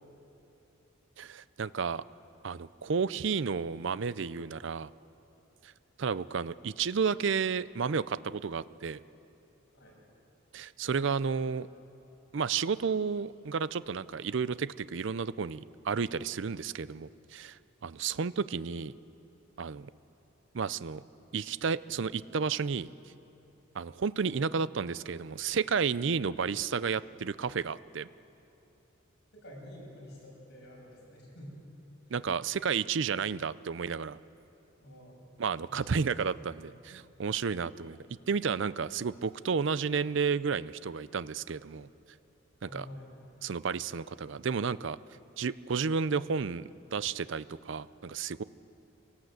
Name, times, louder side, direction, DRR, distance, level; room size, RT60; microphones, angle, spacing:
voice 1, 1.2-2.0 2.4-4.9 6.0-9.0 10.5-11.7 12.3-18.9 19.6-19.9 20.5-21.0 21.3-22.9 23.7-28.1 32.1-34.2 35.4-38.0 38.3-41.9 42.6-42.9 43.4-45.0 45.4-48.4, right 5 dB, 60° right, 17 dB, 0.5 m, -32 dB
voice 2, 29.4-31.6 32.1-32.2 34.8-35.3 35.7-36.0 42.7-43.1, equal, 55° left, -3 dB, 7.8 m, -48 dB
24.0 x 18.0 x 7.9 m, 2.9 s
head